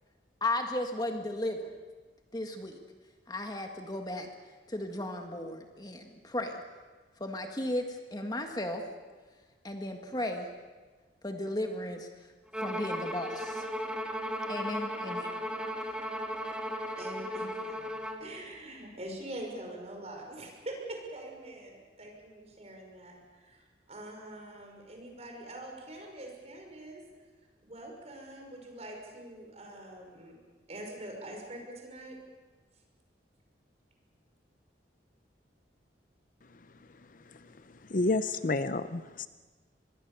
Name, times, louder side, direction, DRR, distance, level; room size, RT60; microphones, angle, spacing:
voice 1, 0.4-1.7 2.3-2.8 3.3-4.3 4.7-6.6 7.2-8.8 9.6-10.5 11.2-12.1 12.6-13.7 14.5-15.3, left 1 dB, 20° left, 4 dB, 1.7 m, -35 dB
Bowed string instrument, 12.5-18.3, equal, 5° right, 1.9 m, -36 dB
voice 2, 17.0-17.5 17.8-17.9 18.2-23.6 23.9-27.0 27.6-30.4 30.7-32.2, right 1 dB, 35° right, 1 dB, 5.8 m, -44 dB
voice 3, 37.9-39.3, left 2 dB, 50° left, 12 dB, 0.7 m, -29 dB
25.5 x 21.5 x 6.9 m, 1.4 s
head